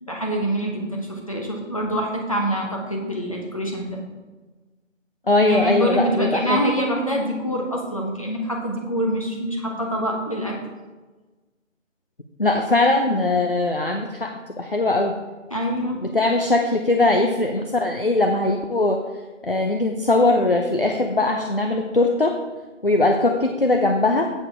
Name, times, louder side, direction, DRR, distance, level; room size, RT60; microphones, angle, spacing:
voice 1, 0.0-4.0 5.4-10.6 15.5-16.0, equal, 25° left, -1 dB, 1.0 m, -25 dB
voice 2, 5.3-6.6 12.4-15.1 16.0-19.0 19.4-22.4 22.8-24.3, left 2 dB, 45° left, 3 dB, 0.6 m, -20 dB
8.0 x 6.5 x 4.7 m, 1.2 s
figure-of-eight pair, 170°, 39 cm